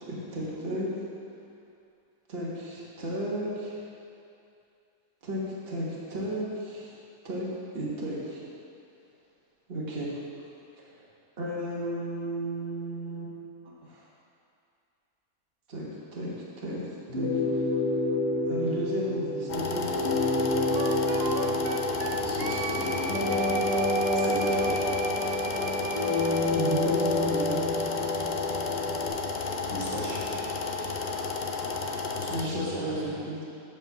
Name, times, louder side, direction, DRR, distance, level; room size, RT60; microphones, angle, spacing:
voice 1, 0.0-0.9 2.3-3.9 5.2-6.9 7.2-7.5 7.7-8.4 9.7-10.1 11.4-13.3 13.9-14.0 15.7-15.9 16.1-16.3 16.6-16.8 17.1-17.7 18.5-20.0 26.5-27.7 32.3-33.4, right 1 dB, 40° right, -6 dB, 1.6 m, -33 dB
sound 1, 17.1-29.1, left 1 dB, 25° left, 0.7 m, -28 dB
sound 2, 19.5-32.4, left 4 dB, 70° left, 0.4 m, -32 dB
Wind instrument woodwind instrument, 20.7-26.4, right 5 dB, 70° right, 0.6 m, -38 dB
voice 2, 22.1-23.7 24.1-24.8 29.6-30.2 32.1-33.1, equal, 20° right, -9 dB, 2.4 m, -37 dB
7.3 x 5.2 x 6.9 m, 2.6 s
omnidirectional pair, 1.5 m